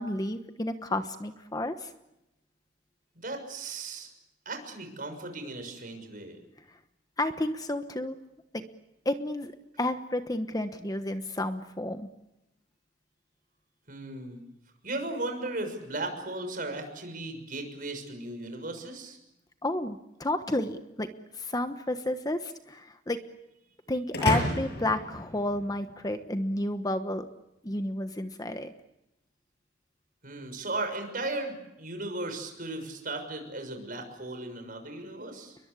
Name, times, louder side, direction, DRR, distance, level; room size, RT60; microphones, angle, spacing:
voice 1, 0.0-1.9 7.2-8.2 8.5-8.6 9.0-9.5 9.8-12.1 19.6-23.2 23.9-27.2 27.6-28.7, left 1 dB, 20° left, 8 dB, 1.2 m, -31 dB
voice 2, 3.1-4.1 4.4-6.4 13.9-14.4 14.8-19.2 30.2-35.6, right 2 dB, 50° right, 6 dB, 6.5 m, -36 dB
sound 1, 24.1-26.1, left 1 dB, 60° left, 7.3 m, -31 dB
29.5 x 22.5 x 8.4 m, 0.90 s
head